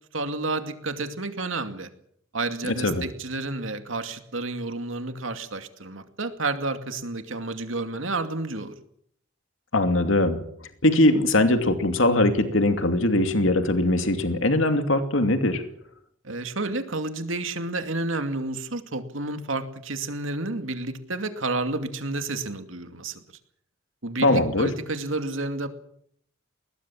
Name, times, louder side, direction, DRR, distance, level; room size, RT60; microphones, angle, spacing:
voice 1, 0.1-1.9 2.3-8.7 16.2-23.2 24.0-25.7, right 2 dB, 75° right, 7 dB, 2.5 m, -30 dB
voice 2, 2.7-3.0 9.7-10.4 10.8-15.6 24.2-24.7, left 1 dB, 75° left, 7 dB, 2.6 m, -21 dB
21.5 x 20.0 x 7.4 m, 0.68 s
head